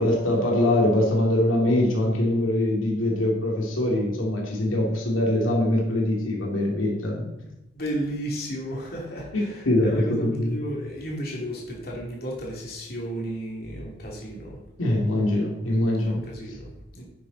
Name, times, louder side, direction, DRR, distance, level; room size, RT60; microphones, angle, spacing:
voice 1, 0.0-7.3 9.3-10.6 14.8-16.6, left 1 dB, 85° left, -2 dB, 2.5 m, -23 dB
voice 2, 7.7-14.6 16.0-17.0, right 1 dB, 50° left, -3 dB, 2.7 m, -33 dB
10.5 x 8.5 x 4.0 m, 0.95 s
head